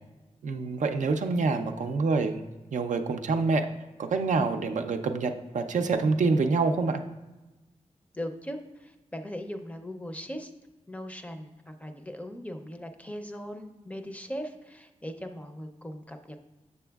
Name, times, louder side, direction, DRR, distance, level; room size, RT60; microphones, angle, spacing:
voice 1, 0.4-2.4 2.7-3.7 4.0-7.0, right 4 dB, 80° right, 6 dB, 0.4 m, -26 dB
voice 2, 8.1-10.5 10.9-16.4, equal, 10° left, 6 dB, 0.5 m, -39 dB
7.0 x 6.7 x 2.3 m, 1.1 s
wide cardioid pair, 100°, 13 cm